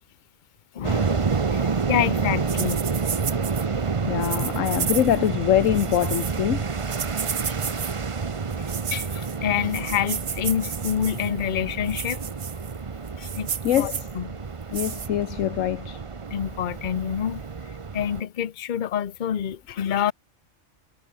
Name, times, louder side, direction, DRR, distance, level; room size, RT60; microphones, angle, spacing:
voice 1, 0.7-2.8 7.5-7.6 8.9-12.2 13.2-14.4 16.3-17.4 17.9-20.1, left 9 dB, 45° left, 0.8 m, -27 dB
sound 1, 0.8-18.2, right 5 dB, 30° right, 0.7 m, -29 dB
sound 2, 2.5-3.6 4.2-5.3 5.6-6.4 6.9-7.9 8.5-9.4 9.7-11.3 11.9-12.7 13.1-14.1 14.7-15.1, right 7 dB, 60° right, 1.5 m, -32 dB
voice 2, 4.0-6.6 13.6-14.1 14.7-16.0, left 12 dB, 75° left, 1.1 m, -24 dB
omnidirectional pair, 1.4 m